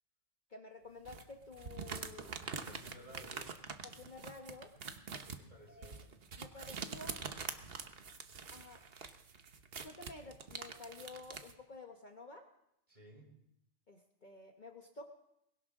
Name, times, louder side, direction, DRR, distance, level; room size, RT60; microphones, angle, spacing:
voice 1, 0.5-2.3 3.8-4.7 5.7-6.1 6.4-7.2 8.5-8.8 9.8-12.4 13.9-15.0, left 3 dB, 40° left, 3 dB, 1.3 m, -51 dB
sound 1, 1.0-11.5, right 5 dB, 55° right, 1.2 m, -45 dB
voice 2, 2.4-3.5 5.1-6.0 12.9-13.3, equal, 40° right, -3 dB, 6.2 m, -56 dB
21.0 x 17.0 x 3.7 m, 0.80 s
omnidirectional pair, 1.2 m